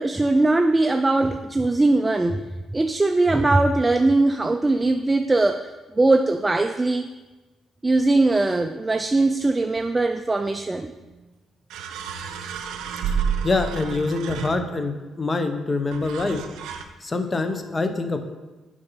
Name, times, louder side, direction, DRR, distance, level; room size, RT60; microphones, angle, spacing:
voice 1, 0.0-2.5 2.7-7.1 7.8-10.9, right 2 dB, 20° right, 7 dB, 0.3 m, -20 dB
sound 1, 11.0-11.1 11.7-14.9 15.9-16.8, right 7 dB, 90° right, 0.6 m, -30 dB
voice 2, 13.4-16.4 17.0-18.2, left 3 dB, 25° left, 7 dB, 0.8 m, -25 dB
6.9 x 5.3 x 5.6 m, 1.2 s
cardioid pair, 90°, 0 cm